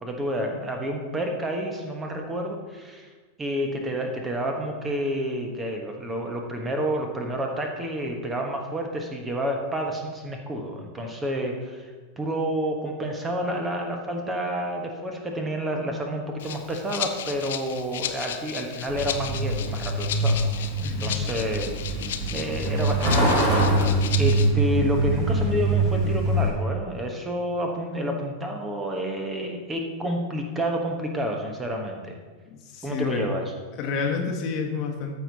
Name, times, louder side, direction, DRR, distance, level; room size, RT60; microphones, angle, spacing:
voice 1, 0.0-3.1 3.4-11.9 12.2-20.4 21.0-21.7 22.3-23.5 23.8-23.9 24.2-32.2 32.8-33.4, equal, 15° right, 2 dB, 1.3 m, -29 dB
Rattle (instrument), 16.4-24.5, left 9 dB, 60° left, 0.6 m, -35 dB
Truck, 18.9-26.5, right 1 dB, 35° right, 2.9 m, -24 dB
voice 2, 20.8-21.1 32.5-33.2 33.8-35.2, left 5 dB, 40° left, 2 dB, 1.3 m, -29 dB
13.5 x 4.6 x 4.1 m, 1.4 s
figure-of-eight pair, 90°, 0 cm